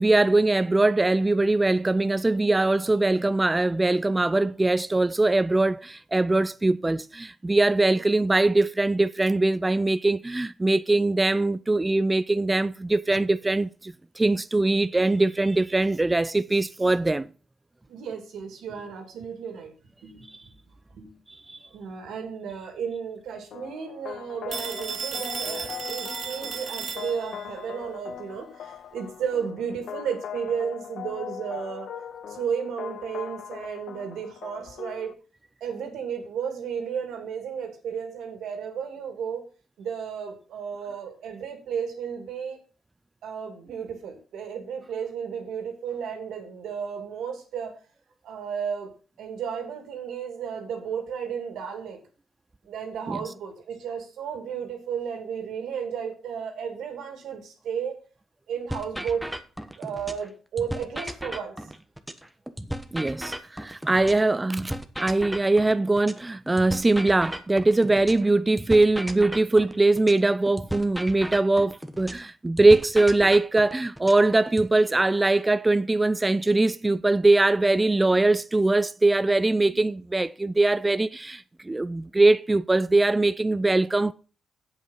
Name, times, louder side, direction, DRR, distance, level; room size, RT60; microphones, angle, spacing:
voice 1, 0.0-17.3 20.3-20.4 21.5-21.6 53.1-53.2 62.9-84.1, right 2 dB, 20° right, 0.4 m, -22 dB
voice 2, 17.9-19.7 20.0-20.6 20.9-21.1 21.7-31.9 32.3-35.2 35.6-39.5 39.8-42.6 43.2-47.7 48.2-48.9 49.2-52.0 52.7-58.0 58.5-59.3 59.8-61.6 79.7-79.8, right 7 dB, 90° right, 2.6 m, -33 dB
sound 1, 23.5-35.1, left 8 dB, 75° left, 0.6 m, -40 dB
Telephone, 24.5-27.5, right 6 dB, 60° right, 2.2 m, -34 dB
sound 2, 58.7-60.3 60.6-64.3 64.6-68.3 68.6-72.3 72.6-74.7, equal, 5° right, 1.2 m, -35 dB
8.2 x 7.6 x 5.7 m
cardioid pair, 80°, 0 cm